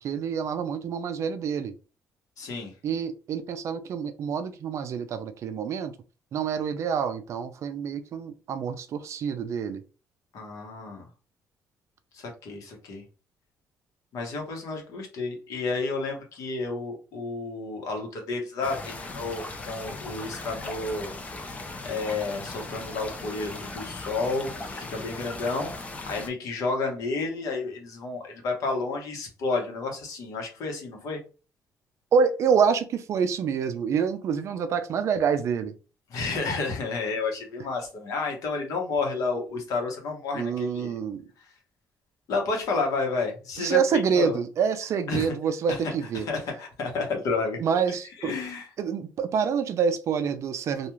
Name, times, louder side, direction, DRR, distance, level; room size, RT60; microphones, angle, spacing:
voice 1, 0.0-1.7 2.8-5.9 6.3-9.8 32.1-35.8 40.3-41.2 43.6-46.3 47.6-48.3 48.8-50.9, right 6 dB, 50° right, 0.4 m, -27 dB
voice 2, 2.4-2.7 10.3-11.0 12.1-13.0 14.1-21.1 21.8-25.7 26.1-31.2 36.1-40.9 42.3-43.8 44.1-44.4 45.1-45.3 46.3-47.6 48.2-48.6, left 3 dB, 70° left, 1.0 m, -31 dB
sound 1, 18.6-26.3, left 2 dB, 20° left, 0.4 m, -38 dB
2.3 x 2.3 x 3.0 m
cardioid pair, 145°, 6 cm